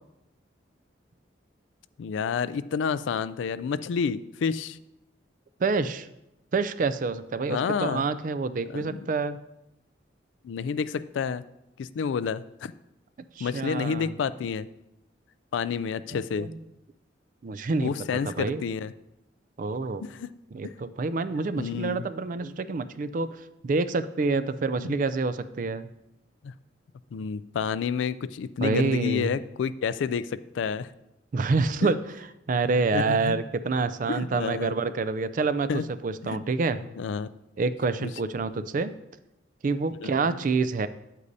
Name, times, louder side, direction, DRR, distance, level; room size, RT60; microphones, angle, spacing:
voice 1, 2.0-4.8 7.5-8.0 8.7-9.0 10.4-11.4 11.8-12.7 13.4-14.7 15.5-16.5 17.8-18.9 20.2-20.3 21.6-22.0 24.8-24.9 26.4-26.5 27.1-30.9 32.9-33.3 34.1-34.7 35.7-35.8 36.2-36.4 37.0-37.3 40.0-40.1, left 6 dB, 75° left, 15 dB, 0.3 m, -29 dB
voice 2, 5.6-6.1 6.5-9.4 13.3-14.1 16.1-16.6 17.4-18.6 19.6-20.0 20.5-25.9 28.6-29.4 31.3-36.8 37.6-38.9 39.6-40.9, right 4 dB, 45° right, 13 dB, 0.4 m, -27 dB
9.5 x 8.2 x 2.7 m, 0.89 s
head